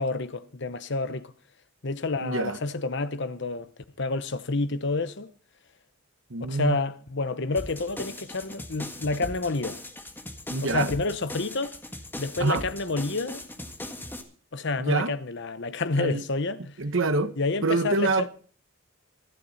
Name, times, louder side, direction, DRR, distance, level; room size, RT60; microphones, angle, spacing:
voice 1, 0.0-1.3 1.8-3.7 4.0-5.3 6.5-9.8 10.6-11.8 12.2-13.5 14.5-16.7 17.4-18.1, left 3 dB, 60° left, 1.0 m, -29 dB
voice 2, 2.2-2.6 6.3-6.8 10.5-10.9 12.4-12.7 14.8-15.1 16.0-16.2 16.8-17.3 17.6-18.3, right 3 dB, 65° right, 1.1 m, -26 dB
sound 1, 7.6-14.2, left 1 dB, 10° left, 1.7 m, -39 dB
25.0 x 8.9 x 4.1 m
head